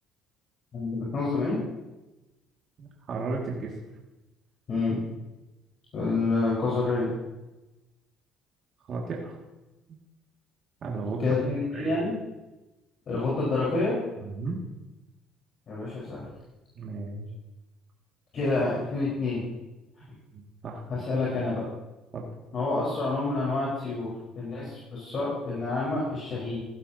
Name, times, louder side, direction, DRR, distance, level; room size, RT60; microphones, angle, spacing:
voice 1, 0.7-1.6 4.7-5.0 5.9-7.1 11.2-12.1 13.1-14.0 15.7-16.3 18.3-19.4 20.9-21.7 22.5-26.6, left 3 dB, 50° left, -6 dB, 4.2 m, -28 dB
voice 2, 2.8-3.7 8.9-9.4 10.8-11.3 11.7-12.0 14.2-14.6 16.8-17.3 20.3-20.8 22.1-22.3, right 3 dB, 50° right, -2 dB, 2.0 m, -34 dB
15.0 x 11.5 x 2.8 m, 1.0 s
supercardioid pair, 95°, 0 cm